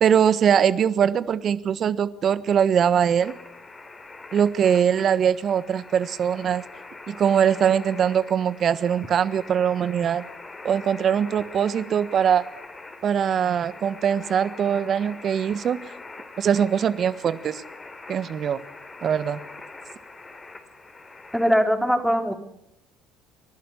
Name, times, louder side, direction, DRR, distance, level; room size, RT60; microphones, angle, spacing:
voice 1, 0.0-3.3 4.3-6.6 7.1-10.2 10.6-12.4 13.0-15.8 16.4-17.6 18.1-18.6 19.0-19.4, right 8 dB, 50° right, 15 dB, 1.3 m, -22 dB
sound 1, 3.2-21.5, left 3 dB, 25° left, 3.8 m, -43 dB
voice 2, 21.3-22.3, equal, ahead, 4 dB, 3.8 m, -21 dB
29.0 x 11.5 x 9.8 m, 0.80 s
hypercardioid pair, 65°, 0 cm